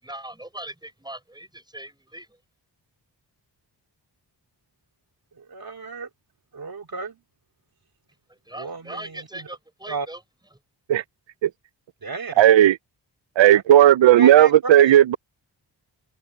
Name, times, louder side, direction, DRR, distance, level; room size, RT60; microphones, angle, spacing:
voice 1, 0.0-2.4 8.3-10.2, right 1 dB, 10° right, 5.9 m, -39 dB
voice 2, 5.3-6.1 6.5-7.2 8.5-9.5 9.9-10.1 12.0-12.5 13.5-13.6 14.1-15.0, right 4 dB, 55° right, 2.9 m, -32 dB
voice 3, 12.4-12.7 13.4-15.2, right 12 dB, 90° right, 0.6 m, -14 dB
wide cardioid pair, 160°, 43 cm